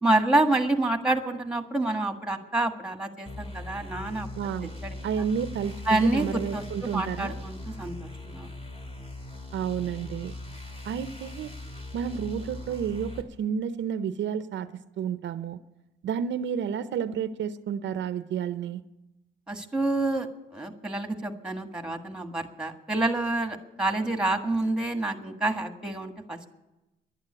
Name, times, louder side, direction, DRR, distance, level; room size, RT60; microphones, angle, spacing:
voice 1, 0.0-4.3 4.8-4.9 5.9-8.5 19.5-20.3 20.5-26.5, right 2 dB, 5° right, 6 dB, 1.6 m, -28 dB
sound 1, 3.3-13.2, left 2 dB, 30° left, 2.2 m, -40 dB
voice 2, 4.4-4.7 5.0-7.3 9.5-10.3 10.8-11.5 11.9-14.7 15.0-15.6 16.0-18.8, right 8 dB, 65° right, 12 dB, 0.6 m, -31 dB
11.5 x 8.9 x 9.8 m, 0.99 s
cardioid pair, 90°, 20 cm